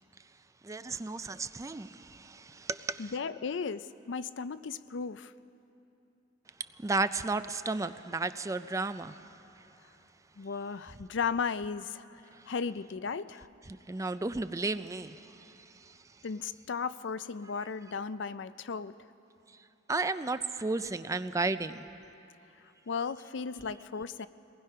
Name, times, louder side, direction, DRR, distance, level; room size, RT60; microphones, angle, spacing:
voice 1, 0.6-3.1 6.8-9.2 13.9-15.5 15.9-16.0 19.9-21.8, right 3 dB, 15° right, 12 dB, 0.4 m, -33 dB
voice 2, 3.0-5.3 10.4-13.5 16.2-18.9 22.9-24.3, left 5 dB, 70° left, 14 dB, 0.5 m, -35 dB
23.5 x 19.5 x 5.6 m, 2.8 s
head